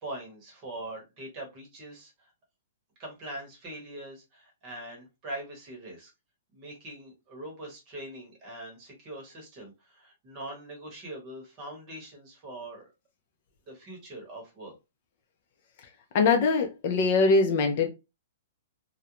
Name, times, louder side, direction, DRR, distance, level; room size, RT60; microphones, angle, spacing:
voice 1, 0.0-2.1 3.0-6.1 6.5-12.9 13.7-14.7, right 1 dB, 25° right, 0.9 m, -42 dB
voice 2, 16.1-17.9, left 4 dB, 35° left, 0.4 m, -22 dB
2.4 x 2.1 x 2.9 m
hypercardioid pair, 175°, 0 cm